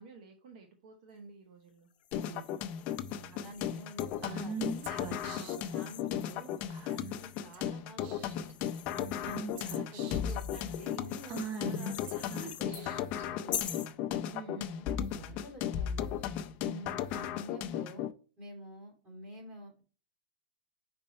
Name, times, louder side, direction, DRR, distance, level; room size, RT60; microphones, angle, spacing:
voice 1, 0.0-1.9 2.9-3.5 5.3-5.5 7.0-7.2 8.9-9.5 14.3-14.9 16.6-17.0, right 4 dB, 60° right, 4 dB, 1.0 m, -49 dB
sound 1, 2.0-7.6 8.2-12.7 13.5-13.9, left 10 dB, 75° left, 0.8 m, -46 dB
sound 2, 2.1-18.1, left 9 dB, 35° left, 0.5 m, -36 dB
voice 2, 2.1-2.4 3.3-4.8 5.2-6.5 6.9-8.4 9.9-12.0 12.3-13.0 13.3-13.8 15.1-16.1 17.1-18.1 18.4-19.8, right 1 dB, 20° right, -1 dB, 2.7 m, -49 dB
Female speech woman speaking / Whispering, 4.2-5.7 6.7-7.1 7.5-7.7 8.0-8.5 9.3-10.3 11.3-13.2, right 5 dB, 35° right, 0.9 m, -41 dB
5.3 x 4.4 x 4.2 m, 0.36 s
supercardioid pair, 155°, 5 cm